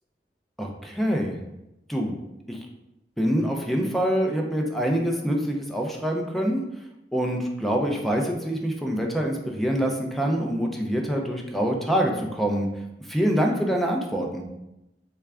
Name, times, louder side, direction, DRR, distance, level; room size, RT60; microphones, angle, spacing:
voice 1, 0.6-1.4 1.9-2.1 2.5-2.6 3.2-6.6 7.1-12.7 13.1-14.4, equal, ahead, 1 dB, 0.4 m, -25 dB
3.3 x 2.3 x 3.3 m, 0.91 s
head